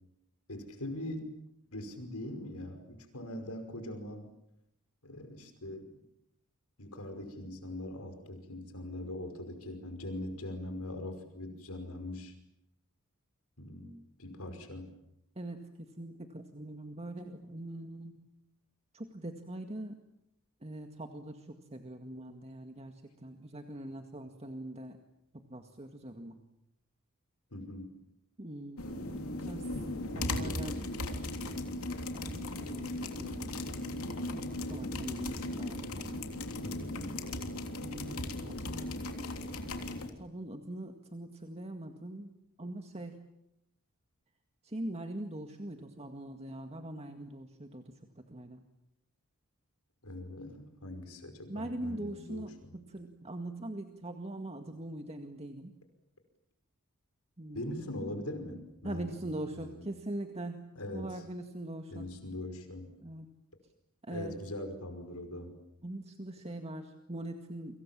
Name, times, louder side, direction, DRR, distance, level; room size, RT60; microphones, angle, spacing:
voice 1, 0.5-1.4 1.7-4.3 5.0-5.9 6.8-12.3 13.6-13.9 14.2-14.9 27.5-28.0 30.1-30.7 36.6-37.2 50.0-52.5 57.5-59.1 59.5-59.8 60.8-61.1 61.9-62.9 64.1-65.6, left 1 dB, 85° left, 7 dB, 5.4 m, -41 dB
voice 2, 15.4-18.2 18.9-20.0 20.6-25.0 25.3-26.4 28.4-29.7 30.1-30.7 31.0-31.1 32.1-34.0 34.3-36.5 37.8-38.9 40.2-42.3 42.6-43.2 44.6-47.9 48.3-48.6 51.5-55.7 57.4-57.8 58.8-60.6 60.9-62.1 63.0-63.3 64.0-64.3 65.8-67.8, right 1 dB, 30° right, 5 dB, 2.0 m, -42 dB
sound 1, 28.8-40.1, left 2 dB, 70° left, 3.3 m, -37 dB
30.0 x 25.5 x 7.6 m, 0.82 s
head